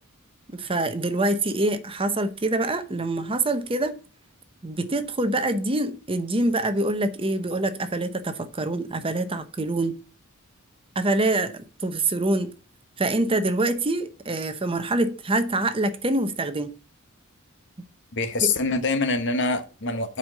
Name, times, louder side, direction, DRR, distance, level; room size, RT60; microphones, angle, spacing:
voice 1, 0.5-4.0 4.6-10.0 10.9-12.5 13.0-16.7 18.4-18.5, right 2 dB, 25° right, 0.8 m, -25 dB
voice 2, 18.1-20.2, left 3 dB, 55° left, 1.3 m, -25 dB
7.6 x 5.5 x 6.5 m
head